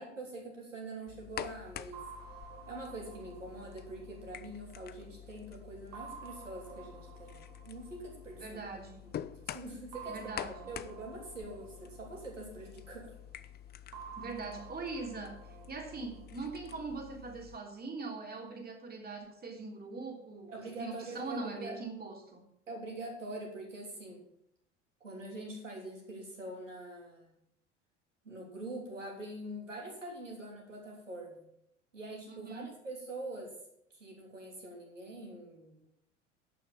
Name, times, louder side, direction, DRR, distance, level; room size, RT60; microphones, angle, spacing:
voice 1, 0.0-2.0 2.7-8.8 9.3-13.1 20.5-21.7 22.7-24.2 25.0-27.3 28.2-31.4 31.9-33.5 33.9-35.7, right 2 dB, 85° right, -1 dB, 3.3 m, -44 dB
sound 1, 1.1-17.6, left 10 dB, 25° left, 0.6 m, -48 dB
sound 2, 1.9-5.3 5.9-8.8 9.9-13.0 13.9-17.0, right 7 dB, 55° right, 2.5 m, -51 dB
voice 2, 8.4-9.1 10.1-10.7 14.2-20.5 20.8-22.4 32.3-32.7, right 3 dB, 25° right, 2 dB, 3.3 m, -42 dB
10.5 x 6.4 x 7.5 m, 0.77 s
figure-of-eight pair, 70°, 37 cm